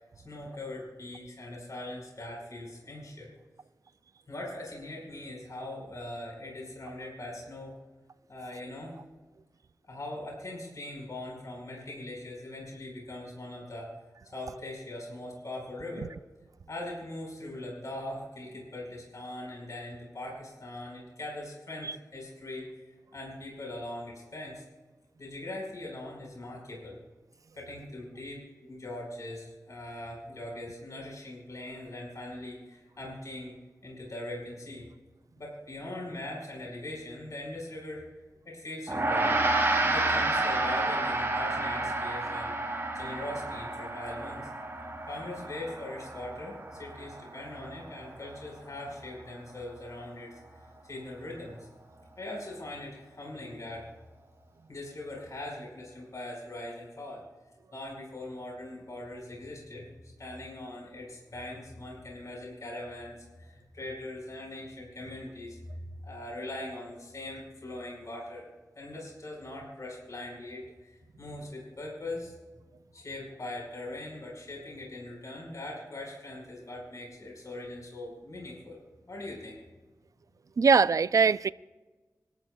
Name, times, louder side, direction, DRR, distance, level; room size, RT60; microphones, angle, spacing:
voice 1, 0.2-3.3 4.3-7.7 8.3-9.0 9.9-13.9 14.3-16.1 16.7-22.7 23.1-24.6 25.2-27.0 27.5-33.5 33.8-34.8 35.4-38.0 38.4-39.4 39.8-42.5 42.9-44.5 45.1-50.3 50.8-51.7 52.2-53.9 54.7-57.2 57.7-65.6 66.0-68.5 68.7-72.3 72.9-78.8 79.1-79.6, left 1 dB, 60° left, 4.9 m, -41 dB
Gong, 38.9-48.4, right 2 dB, 40° right, 3.7 m, -30 dB
voice 2, 80.6-81.5, right 5 dB, 60° right, 0.4 m, -22 dB
26.5 x 13.0 x 2.3 m
cardioid pair, 55°, 6 cm